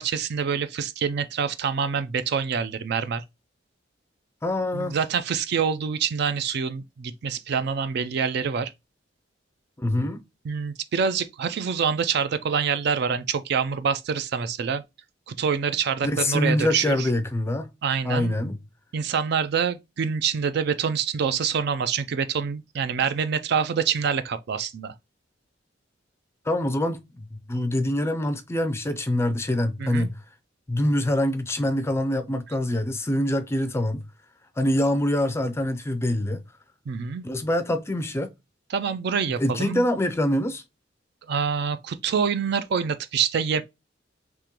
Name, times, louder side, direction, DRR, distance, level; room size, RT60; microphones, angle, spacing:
voice 1, 0.0-3.2 4.7-8.7 10.4-14.8 15.3-17.1 17.8-18.4 18.9-24.9 29.8-30.1 36.9-37.2 38.7-39.8 41.3-43.6, right 6 dB, 60° right, 0.4 m, -26 dB
voice 2, 4.4-5.0 9.8-10.2 16.0-17.7 18.0-18.6 26.5-30.1 30.7-34.0 34.6-36.4 37.2-38.3 39.4-40.6, left 1 dB, 15° left, 0.4 m, -25 dB
3.7 x 2.9 x 2.9 m
head